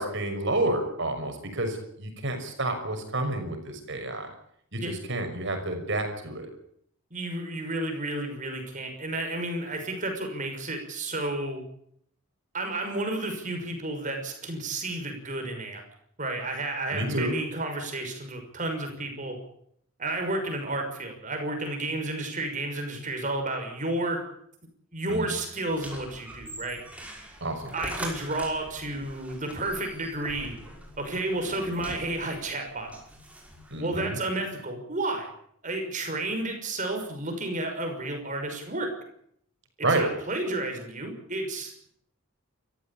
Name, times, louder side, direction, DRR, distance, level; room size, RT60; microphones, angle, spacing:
voice 1, 0.0-4.3 4.7-6.5 16.9-17.4 25.1-25.3 27.4-27.7 33.7-34.2 39.8-40.1, right 2 dB, 55° right, 5 dB, 6.0 m, -29 dB
voice 2, 7.1-11.6 12.5-15.8 16.2-19.4 20.0-24.2 24.9-26.8 27.7-30.6 31.0-32.9 33.7-35.3 35.6-38.9 39.8-41.9, right 2 dB, 35° right, 4 dB, 6.1 m, -31 dB
sound 1, 25.7-33.8, right 1 dB, 5° right, 5.5 m, -43 dB
28.5 x 15.0 x 8.7 m, 0.70 s
head